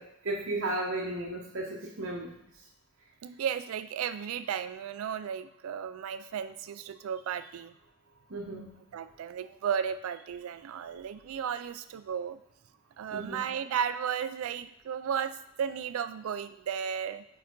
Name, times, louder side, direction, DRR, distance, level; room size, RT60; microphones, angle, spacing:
voice 1, 0.0-2.4 8.3-8.8 13.1-13.4, right 2 dB, 65° right, -3 dB, 0.8 m, -34 dB
voice 2, 3.2-7.7 8.9-12.4 13.0-17.3, right 8 dB, 90° right, 12 dB, 0.3 m, -34 dB
4.7 x 4.7 x 4.5 m, 0.79 s
head